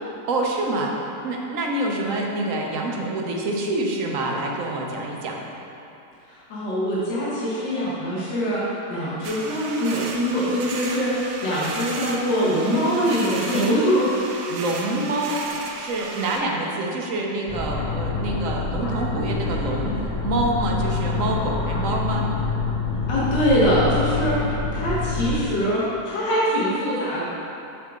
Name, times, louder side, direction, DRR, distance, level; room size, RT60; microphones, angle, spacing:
voice 1, 0.3-0.9 1.2-5.4 14.5-15.4 15.7-22.3, right 2 dB, 55° right, -1 dB, 1.0 m, -26 dB
voice 2, 6.3-14.1 23.1-27.2, equal, 70° left, -8 dB, 2.1 m, -23 dB
sound 1, 9.2-16.4, right 4 dB, 90° right, 0.6 m, -34 dB
sound 2, 17.5-25.3, left 4 dB, 35° left, 0.6 m, -26 dB
7.5 x 6.5 x 3.7 m, 2.7 s
omnidirectional pair, 2.0 m